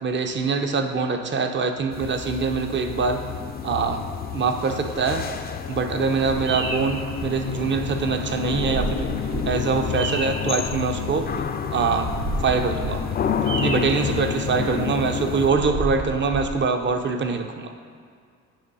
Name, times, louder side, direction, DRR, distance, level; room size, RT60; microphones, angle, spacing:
voice 1, 0.0-3.2 3.6-4.0 4.3-5.3 5.7-9.1 9.4-11.3 11.7-12.1 12.4-13.0 13.6-17.7, right 4 dB, 40° right, 6 dB, 0.6 m, -24 dB
sound 1, 1.9-15.5, left 8 dB, 35° left, 0.4 m, -30 dB
Bird vocalization bird call bird song, 6.0-16.5, right 3 dB, 80° right, 0.7 m, -33 dB
8.5 x 3.1 x 5.4 m, 2.1 s
cardioid pair, 90°, 30 cm